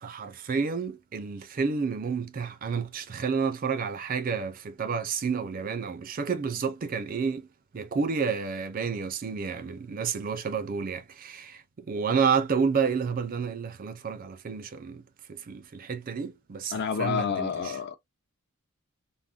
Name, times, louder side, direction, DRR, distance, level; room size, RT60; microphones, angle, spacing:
voice 1, 0.0-7.5 7.7-15.0 15.3-17.8, right 5 dB, 40° right, 0.4 m, -30 dB
voice 2, 16.7-18.0, left 7 dB, 50° left, 0.5 m, -29 dB
3.5 x 2.0 x 2.3 m
head